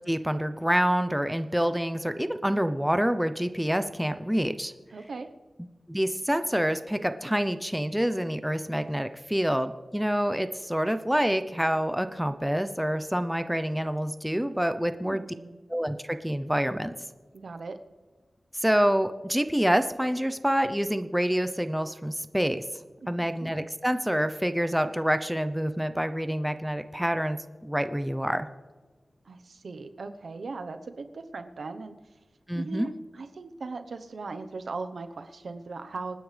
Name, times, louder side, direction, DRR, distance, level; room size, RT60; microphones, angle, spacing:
voice 1, 0.1-4.7 5.9-15.2 15.7-16.9 18.6-22.6 23.1-28.5 32.5-32.9, equal, 5° right, 10 dB, 0.6 m, -27 dB
voice 2, 4.9-5.3 14.8-15.6 17.3-17.8 23.0-23.5 29.2-32.0 32.5-36.2, right 3 dB, 75° right, 8 dB, 1.0 m, -39 dB
26.0 x 9.7 x 3.4 m, 1.3 s
wide cardioid pair, 110°, 0 cm